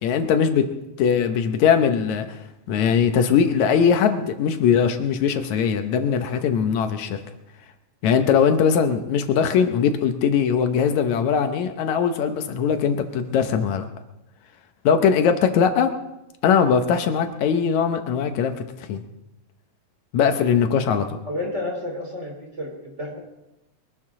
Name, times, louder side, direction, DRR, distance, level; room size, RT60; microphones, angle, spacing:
voice 1, 0.0-0.7 1.0-2.4 2.7-7.2 8.0-13.9 14.9-15.9 16.4-18.5 18.8-19.0 20.1-21.2, left 7 dB, 75° left, 7 dB, 2.2 m, -20 dB
voice 2, 21.3-23.2, left 1 dB, 25° right, 0 dB, 3.2 m, -31 dB
23.0 x 12.0 x 3.7 m, 0.93 s
omnidirectional pair, 3.3 m